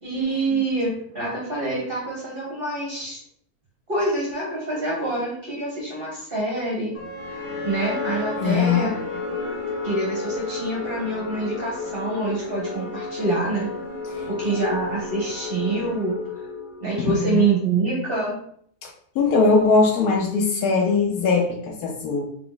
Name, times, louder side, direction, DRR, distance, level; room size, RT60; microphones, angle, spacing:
voice 1, 0.0-3.2 3.9-6.9 7.6-9.2 9.8-13.7 14.3-16.2 16.8-18.4, right 3 dB, 40° right, -5 dB, 1.2 m, -26 dB
sound 1, 6.9-17.1, left 3 dB, 40° left, 1.2 m, -32 dB
voice 2, 8.4-8.9 14.1-14.6 17.2-17.4 18.8-18.9 19.2-22.2, left 4 dB, 85° left, 0 dB, 1.2 m, -21 dB
3.6 x 2.9 x 3.9 m, 0.65 s
omnidirectional pair, 1.6 m